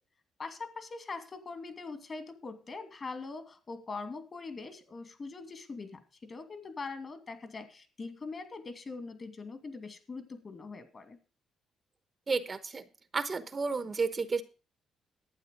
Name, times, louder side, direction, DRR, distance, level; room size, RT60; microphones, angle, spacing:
voice 1, 0.4-11.2, left 4 dB, 40° left, 8 dB, 2.5 m, -42 dB
voice 2, 12.3-12.8 13.1-14.4, right 4 dB, 35° right, 12 dB, 1.0 m, -31 dB
12.0 x 8.8 x 5.3 m, 0.35 s
cardioid pair, 90°, 0 cm